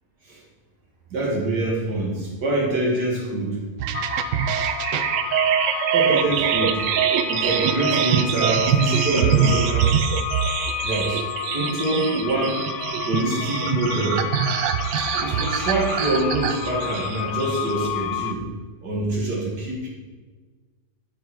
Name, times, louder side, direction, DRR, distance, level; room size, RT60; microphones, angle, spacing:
voice 1, 1.1-3.6 5.9-6.8 7.3-10.0 10.8-11.2 11.5-12.6 13.1-14.2 15.2-18.4 18.8-19.9, right 2 dB, 65° right, -3 dB, 2.4 m, -25 dB
sound 1, 3.8-17.9, right 8 dB, 85° right, 1.3 m, -24 dB
sound 2, 3.9-18.3, left 9 dB, 80° left, 1.2 m, -31 dB
7.7 x 5.4 x 6.1 m, 1.4 s
omnidirectional pair, 1.9 m